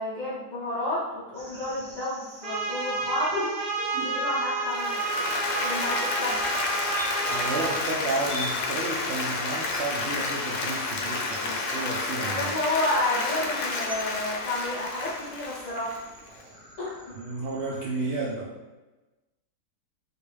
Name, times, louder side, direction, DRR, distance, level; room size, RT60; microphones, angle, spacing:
voice 1, 0.0-3.5 4.0-5.0 5.6-6.4 12.2-15.9 16.8-17.0, left 1 dB, 50° left, -9 dB, 0.5 m, -30 dB
sound 1, 1.3-18.3, right 1 dB, 50° right, 1.1 m, -45 dB
Trumpet, 2.4-7.8, right 3 dB, 85° right, 1.3 m, -30 dB
Applause, 4.7-16.4, left 3 dB, 80° left, 1.1 m, -30 dB
voice 2, 7.3-12.5 17.2-18.5, right 3 dB, 70° right, -6 dB, 0.6 m, -32 dB
3.2 x 2.5 x 3.2 m, 1.1 s
omnidirectional pair, 1.7 m